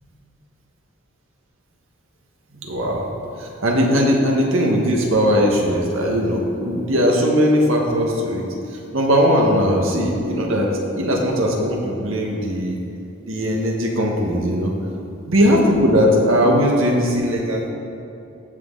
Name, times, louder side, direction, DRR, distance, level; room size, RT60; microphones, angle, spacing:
voice 1, 2.7-3.0 3.4-8.4 8.9-12.8 13.3-14.7 15.3-17.7, equal, 90° right, -1 dB, 1.7 m, -19 dB
15.5 x 6.4 x 4.0 m, 2.7 s
head